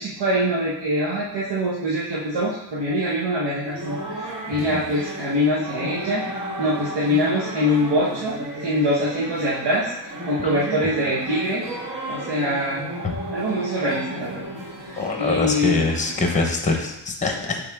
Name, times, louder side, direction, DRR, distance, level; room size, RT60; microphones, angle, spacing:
voice 1, 0.0-6.3 6.6-9.9 10.3-11.6 12.1-12.9 13.3-14.5 14.8-15.8, equal, 80° right, -6 dB, 1.2 m, -24 dB
sound 1, 3.6-16.4, right 1 dB, 45° right, 1.7 m, -34 dB
voice 2, 15.0-17.6, left 3 dB, 15° left, 3 dB, 1.0 m, -23 dB
8.2 x 3.6 x 3.5 m, 0.93 s
wide cardioid pair, 115°, 42 cm